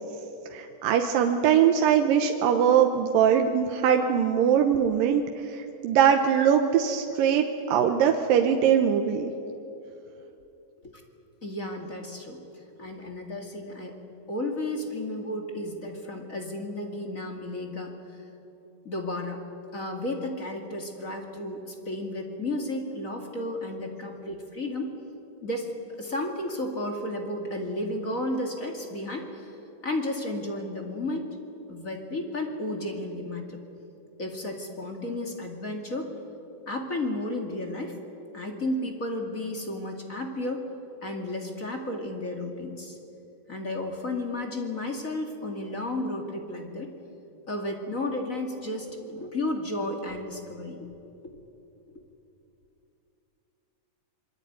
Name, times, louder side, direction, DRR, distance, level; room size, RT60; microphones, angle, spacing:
voice 1, 0.5-9.3, right 8 dB, 80° right, 4 dB, 2.7 m, -22 dB
voice 2, 11.4-12.4 12.8-14.0 14.3-18.0 18.8-19.4 19.7-24.9 25.4-25.7 26.0-29.5 29.8-31.3 31.7-33.6 34.2-36.1 36.7-37.9 38.3-40.7 41.0-43.0 43.5-46.9 47.5-50.9 51.2-51.3, left 1 dB, 25° left, 3 dB, 2.2 m, -33 dB
26.5 x 23.5 x 9.4 m, 2.9 s
omnidirectional pair, 4.0 m